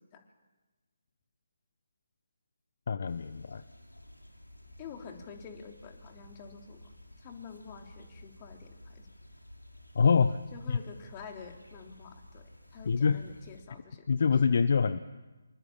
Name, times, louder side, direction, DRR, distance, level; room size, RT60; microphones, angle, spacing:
voice 1, 2.9-3.6 9.9-10.4 10.7-10.8 12.9-13.2 14.1-15.0, left 5 dB, 50° left, 13 dB, 0.9 m, -25 dB
sound 1, 3.1-13.6, left 1 dB, 85° left, 5.4 m, -53 dB
voice 2, 4.8-6.8 7.2-9.0 10.5-14.1, left 6 dB, 25° left, 3 dB, 3.4 m, -48 dB
26.5 x 24.0 x 8.8 m, 1.2 s
figure-of-eight pair, 145°, 0 cm